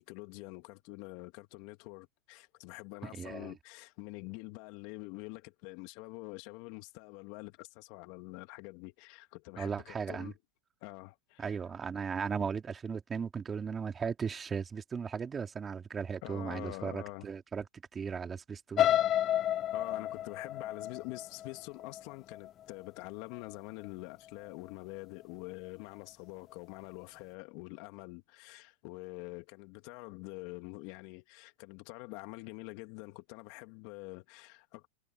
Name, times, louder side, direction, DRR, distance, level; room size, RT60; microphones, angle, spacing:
voice 1, 0.0-10.3 10.8-11.6 16.2-17.3 19.7-34.9, left 25 dB, 60° left, 2.6 m, -46 dB
voice 2, 3.0-3.5 9.6-10.3 11.4-17.6 17.9-18.9, right 6 dB, 20° right, 3.1 m, -37 dB
sound 1, 18.8-22.7 23.2-23.5 23.9-24.0, left 11 dB, 35° left, 0.4 m, -31 dB
hypercardioid pair, 110°, 0 cm